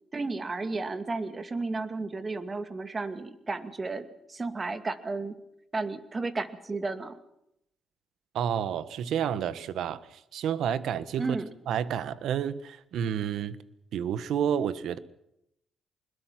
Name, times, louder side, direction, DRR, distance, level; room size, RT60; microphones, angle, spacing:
voice 1, 0.1-5.4 5.7-7.2 11.2-11.5, right 3 dB, 30° right, 10 dB, 2.3 m, -33 dB
voice 2, 8.3-11.4 11.7-13.6 13.9-15.0, right 9 dB, 75° right, 15 dB, 1.3 m, -30 dB
25.0 x 21.5 x 6.0 m, 0.79 s
cardioid pair, 90°, 0 cm